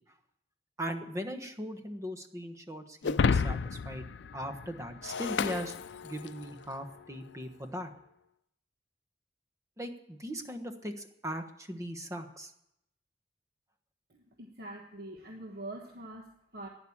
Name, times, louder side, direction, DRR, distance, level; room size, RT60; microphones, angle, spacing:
voice 1, 0.8-4.1 4.3-5.7 6.0-7.9 9.8-12.5, equal, 20° right, 6 dB, 1.3 m, -39 dB
Shatter, 3.0-6.5, left 5 dB, 90° left, 0.5 m, -31 dB
voice 2, 14.1-16.7, right 1 dB, 60° right, 1 dB, 1.4 m, -44 dB
12.0 x 10.0 x 8.6 m, 0.80 s
head